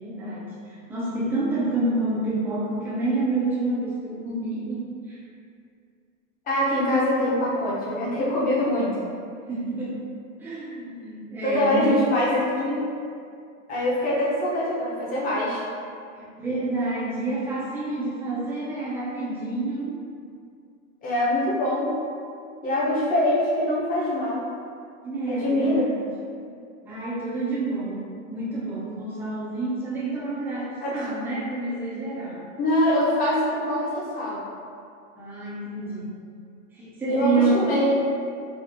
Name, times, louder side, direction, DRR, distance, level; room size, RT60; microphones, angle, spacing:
voice 1, 0.0-5.2 9.5-10.1 10.4-12.0 16.2-19.9 25.0-26.0 26.9-32.4 35.2-36.2 36.7-37.6, right 2 dB, 5° right, -9 dB, 0.4 m, -28 dB
voice 2, 6.5-9.0 11.4-12.9 13.7-15.6 21.0-21.9 22.6-24.5 25.3-25.9 30.8-31.0 32.6-34.4 37.1-37.9, left 1 dB, 20° left, -7 dB, 0.8 m, -23 dB
4.2 x 2.4 x 2.7 m, 2.3 s
supercardioid pair, 150°, 39 cm